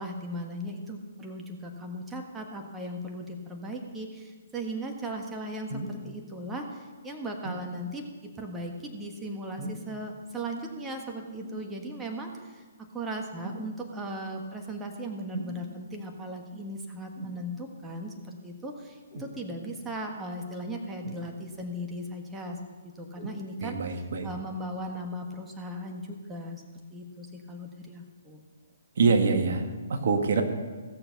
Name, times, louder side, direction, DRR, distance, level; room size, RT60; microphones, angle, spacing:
voice 1, 0.0-22.6 23.0-26.6 26.9-28.4, right 1 dB, 10° right, 1 dB, 1.5 m, -37 dB
sound 1, 5.7-6.0 7.4-7.7 9.6-9.9 11.4-11.6 13.4-13.7 15.3-15.6 17.1-17.4 19.1-19.4 21.0-21.6 23.1-23.4 24.2-24.3, right 1 dB, 30° right, 4.2 m, -38 dB
voice 2, 23.6-24.3 28.9-30.4, right 4 dB, 60° right, 5 dB, 1.6 m, -25 dB
17.0 x 6.8 x 5.9 m, 1.4 s
figure-of-eight pair, 130°, 0 cm